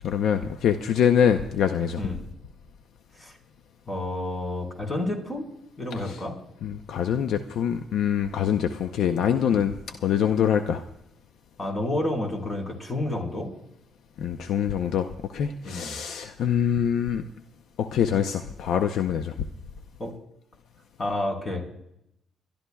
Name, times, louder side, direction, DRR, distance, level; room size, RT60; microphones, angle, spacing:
voice 1, 0.0-2.0 6.0-6.2 6.6-10.8 14.2-17.2 17.8-19.3, left 8 dB, 75° left, 8 dB, 0.6 m, -24 dB
voice 2, 3.9-5.5 5.8-6.4 8.3-8.5 9.5-9.6 11.6-13.5 15.6-16.0 20.0-20.2 21.0-21.7, left 1 dB, 30° left, 2 dB, 4.3 m, -30 dB
29.0 x 12.0 x 2.3 m, 0.79 s
cardioid pair, 90°, 0 cm